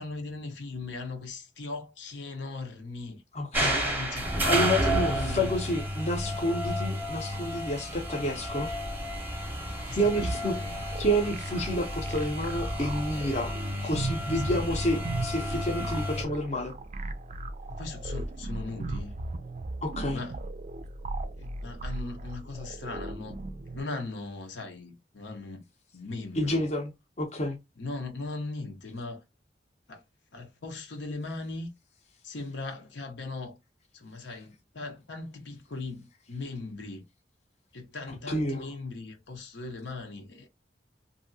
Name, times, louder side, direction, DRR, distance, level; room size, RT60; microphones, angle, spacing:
voice 1, 0.0-3.2 3.5-5.5 9.8-10.7 14.5-14.6 17.8-19.1 20.1-20.4 21.4-23.4 23.7-25.7 25.9-26.7 27.8-29.2 29.9-30.0 30.3-31.7 32.2-33.6 33.9-37.0 37.7-40.5, left 3 dB, 85° left, 0.8 m, -39 dB
voice 2, 3.3-3.8 4.4-8.7 10.0-10.6 11.0-13.5 13.8-16.7 19.8-20.2 26.4-26.9 27.2-27.6 38.3-38.7, equal, 40° left, 0.7 m, -29 dB
sound 1, 3.5-16.2, equal, 10° right, 0.7 m, -31 dB
sound 2, 10.2-23.8, right 2 dB, 40° right, 0.4 m, -37 dB
2.8 x 2.7 x 2.6 m
head